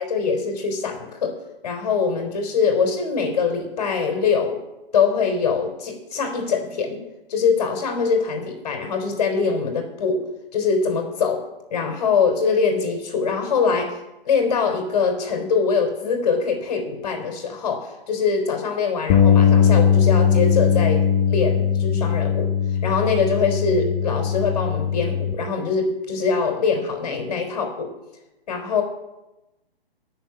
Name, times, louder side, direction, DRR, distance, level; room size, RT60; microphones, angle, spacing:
voice 1, 0.0-1.3 1.6-4.6 4.9-7.0 7.3-10.3 10.5-11.4 11.7-14.0 14.3-22.5 22.8-27.9 28.5-28.8, left 5 dB, 45° left, 4 dB, 3.8 m, -23 dB
Bass guitar, 19.1-25.3, left 7 dB, 25° left, 1.1 m, -19 dB
17.5 x 7.0 x 8.8 m, 0.99 s
figure-of-eight pair, 135°, 30 cm